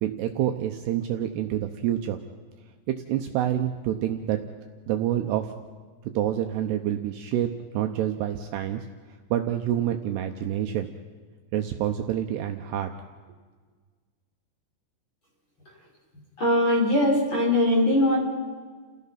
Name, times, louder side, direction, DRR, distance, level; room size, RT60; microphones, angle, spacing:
voice 1, 0.0-2.2 2.9-4.4 4.9-5.5 6.0-8.9 9.3-10.9 11.5-12.9, right 11 dB, 75° right, 5 dB, 2.7 m, -27 dB
voice 2, 16.4-18.2, left 1 dB, 25° left, -4 dB, 6.1 m, -21 dB
30.0 x 16.5 x 5.8 m, 1.5 s
omnidirectional pair, 5.3 m